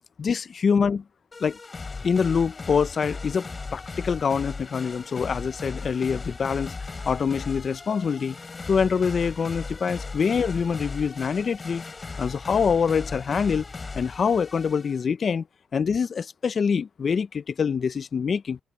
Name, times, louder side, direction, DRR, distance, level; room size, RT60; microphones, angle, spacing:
voice 1, 0.2-1.0 1.4-1.6 2.0-6.7 7.0-8.4 8.7-11.8 12.2-13.6 13.9-15.4 15.7-18.6, left 6 dB, 50° left, 0.9 m, -25 dB
sound 1, 1.3-15.0, left 4 dB, 35° left, 3.8 m, -37 dB
open air
supercardioid pair, 65°, 0 cm